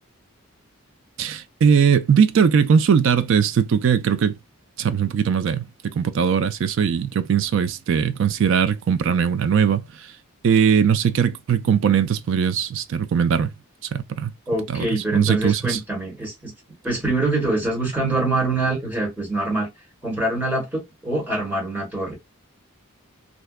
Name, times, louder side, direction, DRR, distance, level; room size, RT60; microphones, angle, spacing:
voice 1, 1.2-4.4 4.8-10.1 10.4-13.5 13.9-14.3 14.7-15.8, right 7 dB, 60° right, 0.3 m, -20 dB
voice 2, 14.5-16.5 16.8-19.7 20.0-22.1, right 2 dB, 10° right, 1.3 m, -24 dB
2.6 x 2.1 x 2.2 m
head